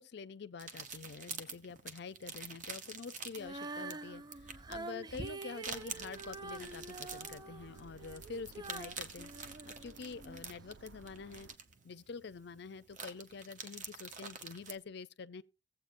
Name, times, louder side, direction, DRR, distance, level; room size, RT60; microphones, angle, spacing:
voice 1, 0.0-9.3 9.6-11.5 11.8-15.4, left 5 dB, 65° left, 0.5 m, -47 dB
sound 1, 0.6-14.8, right 5 dB, 45° right, 0.9 m, -48 dB
Female singing, 3.4-10.4 11.0-11.1, right 3 dB, 20° right, 0.4 m, -46 dB
sound 2, 5.6-11.6, right 4 dB, 85° right, 0.5 m, -57 dB
16.0 x 7.9 x 2.5 m
head